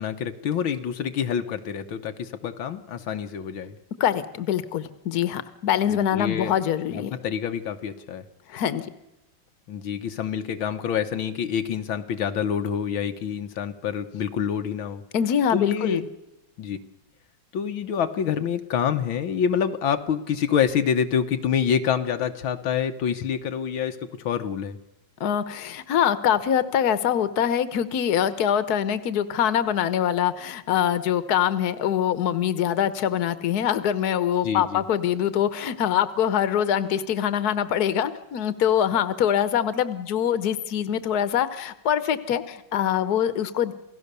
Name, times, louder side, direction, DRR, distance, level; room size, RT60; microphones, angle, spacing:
voice 1, 0.0-3.8 5.9-6.5 6.9-8.3 9.7-15.0 15.5-16.0 16.6-16.8 17.5-24.8 34.4-34.8, left 8 dB, 85° left, 7 dB, 2.0 m, -27 dB
voice 2, 4.0-7.1 8.5-8.9 15.1-16.0 25.2-43.7, left 9 dB, 55° left, 13 dB, 1.6 m, -24 dB
28.5 x 17.5 x 6.9 m, 0.91 s
omnidirectional pair, 2.2 m